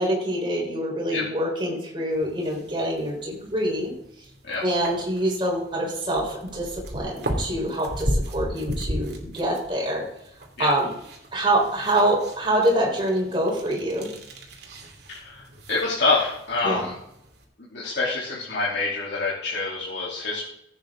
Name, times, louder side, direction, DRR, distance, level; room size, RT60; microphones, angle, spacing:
voice 1, 0.0-3.9 4.6-10.0 10.6-10.9 11.3-14.1 16.6-16.9, right 1 dB, 25° right, -1 dB, 3.9 m, -25 dB
sound 1, 2.1-17.4, equal, 60° right, 2.5 m, -36 dB
voice 2, 15.7-16.9 17.7-20.4, left 3 dB, 65° left, -8 dB, 3.1 m, -26 dB
15.5 x 8.8 x 3.7 m, 0.77 s
head